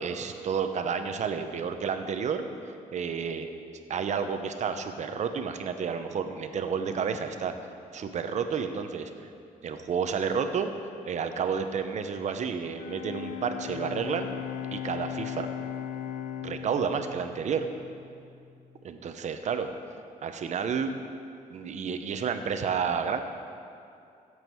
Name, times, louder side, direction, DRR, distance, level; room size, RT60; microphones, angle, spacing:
voice 1, 0.0-3.5 3.9-7.5 7.9-9.1 9.6-10.7 11.0-14.3 14.7-15.5 16.4-17.7 18.8-19.7 20.2-20.9 21.5-23.2, right 6 dB, 55° right, 8 dB, 0.9 m, -30 dB
Bowed string instrument, 12.6-18.6, left 9 dB, 65° left, 0.6 m, -38 dB
15.5 x 8.1 x 4.6 m, 2.5 s
cardioid pair, 120°, 15 cm